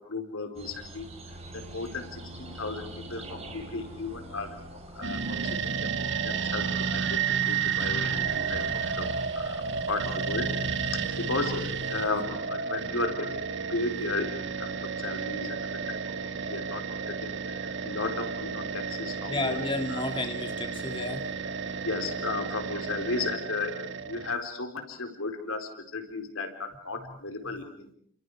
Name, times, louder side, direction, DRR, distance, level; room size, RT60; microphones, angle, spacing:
voice 1, 0.1-1.0 1.5-5.9 6.2-7.2 7.5-8.6 9.0-15.6 15.9-16.0 16.3-19.6 19.9-20.0 21.8-27.9, left 3 dB, 90° left, 6 dB, 4.4 m, -35 dB
sound 1, 0.5-12.1, right 1 dB, 30° right, 4.9 m, -44 dB
sound 2, 5.0-24.4, right 6 dB, 60° right, 1.5 m, -32 dB
voice 2, 19.3-21.2 27.1-27.2, left 2 dB, 25° left, 4 dB, 2.5 m, -32 dB
29.5 x 27.5 x 4.9 m, 0.62 s
head